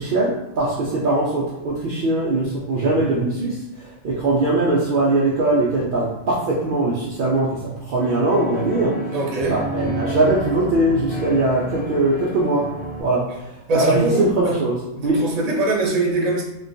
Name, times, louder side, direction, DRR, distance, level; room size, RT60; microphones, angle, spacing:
voice 1, 0.0-9.0 9.5-12.7 13.0-13.3 13.7-15.2, right 2 dB, 85° right, -5 dB, 0.4 m, -21 dB
sound 1, 8.0-13.0, right 1 dB, 45° left, 1.0 m, -30 dB
voice 2, 9.1-9.6 13.7-14.5 15.0-16.4, right 2 dB, 40° right, -3 dB, 0.6 m, -23 dB
3.0 x 2.2 x 2.5 m, 0.89 s
omnidirectional pair, 1.4 m